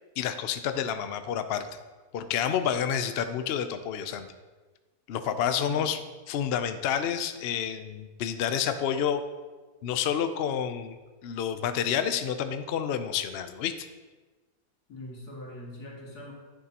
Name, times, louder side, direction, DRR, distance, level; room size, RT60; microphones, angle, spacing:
voice 1, 0.2-1.7 2.1-4.3 5.1-6.0 6.3-9.2 9.8-11.0 11.2-13.7, left 8 dB, 60° left, 9 dB, 0.6 m, -29 dB
voice 2, 14.9-16.3, left 1 dB, 90° left, -3 dB, 2.6 m, -42 dB
11.0 x 9.2 x 2.9 m, 1.3 s
omnidirectional pair, 1.6 m